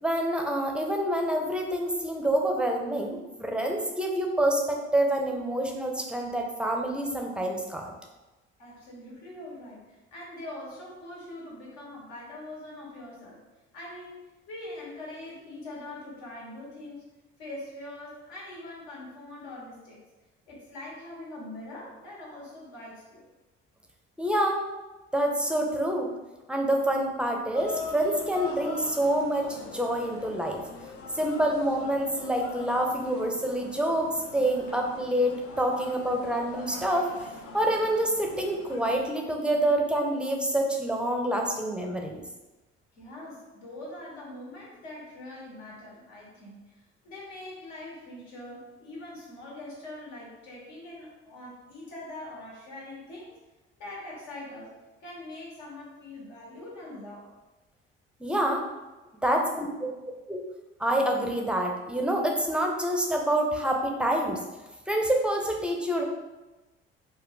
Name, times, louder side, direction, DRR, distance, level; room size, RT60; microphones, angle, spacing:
voice 1, 0.0-7.9 24.2-24.6 25.1-26.1 26.5-30.6 31.2-37.1 37.5-42.2 58.2-58.6 59.2-59.9 60.3-60.4 60.8-64.4 64.9-66.0, right 1 dB, 5° right, 1 dB, 0.5 m, -27 dB
voice 2, 8.6-13.4 13.7-17.1 17.4-20.0 20.5-23.3 43.0-53.3 53.8-54.7 55.0-57.3, left 1 dB, 75° left, -4 dB, 1.1 m, -43 dB
sound 1, 27.5-39.1, left 4 dB, 50° left, 0.5 m, -42 dB
2.6 x 2.2 x 3.6 m, 1.1 s
hypercardioid pair, 55°, 30 cm